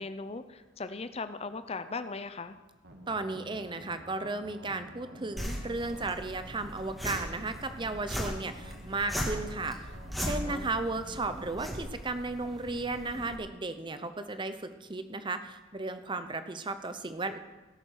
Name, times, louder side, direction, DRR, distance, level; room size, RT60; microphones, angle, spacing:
voice 1, 0.0-2.6 10.4-10.7, left 4 dB, 30° left, 11 dB, 0.6 m, -38 dB
sound 1, 2.8-11.9, right 1 dB, 60° right, 1.7 m, -50 dB
voice 2, 3.1-9.8 10.2-17.4, right 3 dB, 25° right, 10 dB, 0.7 m, -35 dB
sound 2, 5.4-13.4, equal, ahead, 2.0 m, -38 dB
17.0 x 7.1 x 6.4 m, 1.2 s
head